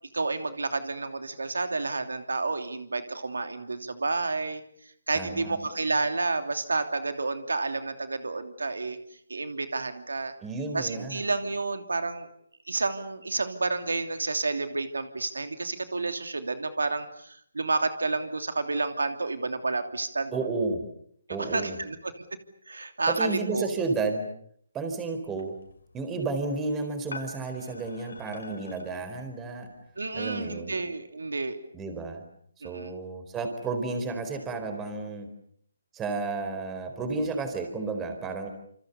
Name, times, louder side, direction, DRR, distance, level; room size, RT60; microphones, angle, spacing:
voice 1, 0.1-4.6 5.1-9.0 9.3-10.3 10.7-12.3 12.7-20.4 21.3-22.1 22.7-23.7 30.0-31.6 32.6-32.9, right 3 dB, 85° right, 8 dB, 2.9 m, -30 dB
voice 2, 5.1-5.6 10.4-11.2 20.3-20.8 21.3-21.8 23.1-24.3 24.7-25.6 25.9-29.7 30.1-30.7 31.7-32.2 32.6-35.3 35.9-38.5, right 3 dB, 15° right, 7 dB, 4.4 m, -32 dB
sound 1, 25.2-30.4, left 3 dB, 75° left, 6.8 m, -48 dB
28.0 x 27.0 x 7.0 m, 0.67 s
hypercardioid pair, 155°, 0 cm